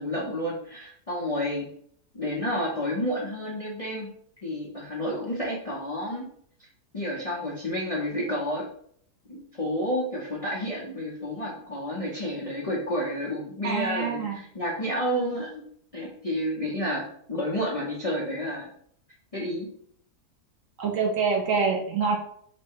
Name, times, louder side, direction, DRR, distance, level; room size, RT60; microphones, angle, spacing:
voice 1, 0.0-1.7 2.1-4.1 4.4-6.3 6.9-8.7 9.3-15.6 15.9-18.7 19.3-19.7, equal, 35° left, -5 dB, 0.6 m, -30 dB
voice 2, 13.6-14.4 20.8-22.2, right 5 dB, 65° right, 2 dB, 0.9 m, -25 dB
4.1 x 2.2 x 4.5 m, 0.65 s
omnidirectional pair, 1.7 m